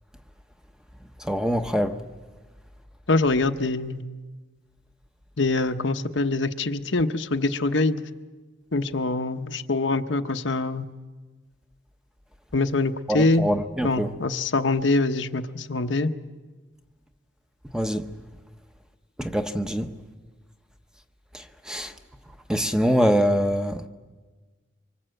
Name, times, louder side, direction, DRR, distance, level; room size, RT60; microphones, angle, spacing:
voice 1, 1.3-1.9 13.1-14.1 17.7-18.0 19.2-19.9 21.7-21.9 22.5-23.8, equal, 5° right, 0.9 m, -23 dB
voice 2, 3.1-4.0 5.4-8.0 8.7-10.8 12.5-13.4 13.8-16.1, left 2 dB, 80° left, 1.0 m, -24 dB
25.0 x 25.0 x 7.8 m
head